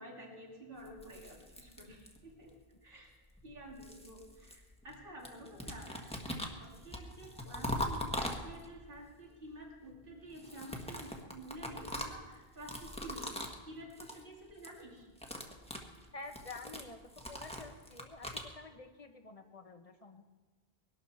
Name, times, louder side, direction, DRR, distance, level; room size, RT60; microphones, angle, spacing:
voice 1, 0.0-2.5 2.8-3.1 3.4-15.1, right 1 dB, 55° right, -1 dB, 3.1 m, -50 dB
sound 1, 0.8-2.4 3.4-5.0 5.2-8.9 10.3-13.6 13.9-14.2 14.5-14.8 15.1-18.5, left 1 dB, 5° left, 1.5 m, -42 dB
voice 2, 16.1-17.0 17.3-18.3 18.5-20.2, left 3 dB, 35° left, 6 dB, 1.2 m, -49 dB
21.5 x 12.0 x 4.3 m, 1.3 s
omnidirectional pair, 1.1 m